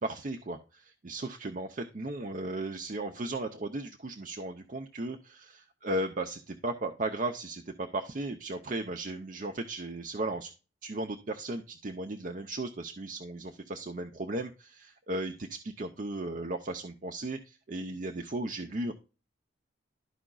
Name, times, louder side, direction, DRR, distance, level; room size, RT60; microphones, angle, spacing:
voice 1, 0.0-10.5 10.8-18.9, right 2 dB, 45° right, 5 dB, 0.5 m, -36 dB
12.0 x 5.0 x 2.3 m, 0.33 s
head